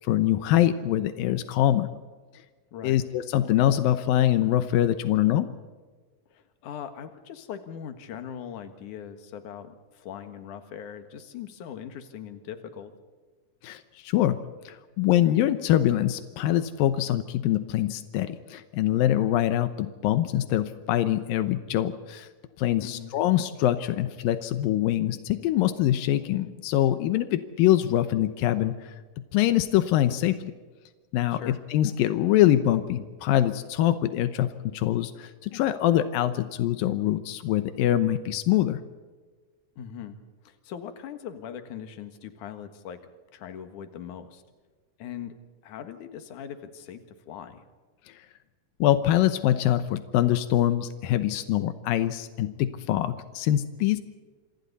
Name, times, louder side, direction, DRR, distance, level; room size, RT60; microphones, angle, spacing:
voice 1, 0.1-1.9 2.8-5.5 13.6-14.4 14.7-22.3 22.6-28.9 29.3-30.5 31.1-38.8 48.8-54.0, left 12 dB, 90° left, 11 dB, 2.7 m, -24 dB
voice 2, 6.3-12.9 22.8-23.1 31.3-31.6 39.8-43.0 43.3-44.4 45.0-45.3 45.6-47.6, left 8 dB, 65° left, 8 dB, 3.0 m, -40 dB
27.0 x 26.5 x 4.1 m, 1.4 s
omnidirectional pair, 4.0 m